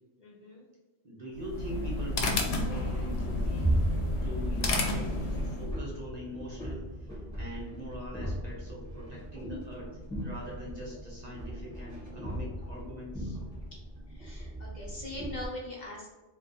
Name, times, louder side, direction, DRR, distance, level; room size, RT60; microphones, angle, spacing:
voice 1, 0.2-0.6 13.7-13.8 14.1-16.2, left 1 dB, 50° left, -3 dB, 0.6 m, -42 dB
voice 2, 1.0-3.8 4.2-9.9 10.2-13.4, equal, 45° right, -4 dB, 0.6 m, -42 dB
sound 1, 1.3-5.8, left 2 dB, 75° left, 0.9 m, -31 dB
sound 2, 3.1-15.5, right 1 dB, 5° left, 1.1 m, -37 dB
2.4 x 2.3 x 3.8 m, 1.1 s
omnidirectional pair, 1.1 m